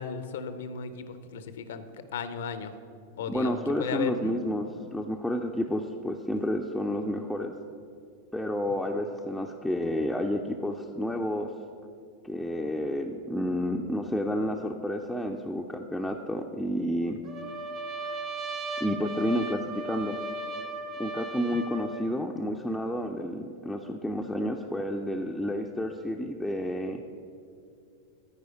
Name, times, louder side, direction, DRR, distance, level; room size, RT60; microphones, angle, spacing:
voice 1, 0.0-1.9 2.1-2.7 3.2-4.3, left 6 dB, 60° left, 11 dB, 0.5 m, -35 dB
voice 2, 3.3-7.5 8.3-11.5 12.2-17.2 18.8-20.2 21.0-27.1, equal, 5° left, 1 dB, 0.4 m, -30 dB
Trumpet, 17.2-22.1, right 2 dB, 30° right, 0.8 m, -36 dB
13.5 x 4.8 x 3.9 m, 2.5 s
figure-of-eight pair, 90°, 0 cm